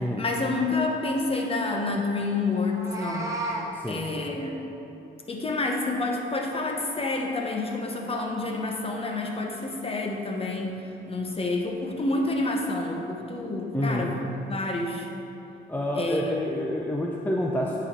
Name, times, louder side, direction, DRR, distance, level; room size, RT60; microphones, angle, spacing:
voice 1, 0.0-3.3 3.9-4.5 5.3-14.1 14.4-15.1 15.9-16.6, left 2 dB, 30° left, 1 dB, 1.1 m, -29 dB
Meow, 2.6-3.7, right 2 dB, 15° right, 1.0 m, -32 dB
voice 2, 3.7-4.0 13.7-14.1 15.7-17.7, left 1 dB, 10° left, -2 dB, 0.6 m, -28 dB
9.5 x 4.3 x 4.5 m, 2.8 s
cardioid pair, 90°, 20 cm